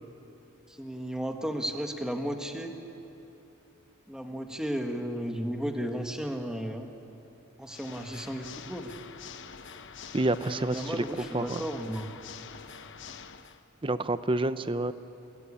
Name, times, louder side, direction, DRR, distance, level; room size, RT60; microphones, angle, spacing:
voice 1, 0.8-2.7 4.1-6.9 7.6-8.9 10.4-12.2, equal, 5° right, 4 dB, 1.6 m, -34 dB
Water / Mechanisms, 7.6-13.6, left 6 dB, 60° left, 1.0 m, -46 dB
voice 2, 10.1-11.0 11.3-11.6 13.8-14.9, right 2 dB, 25° right, 12 dB, 0.7 m, -28 dB
29.0 x 19.5 x 8.8 m, 2.9 s
head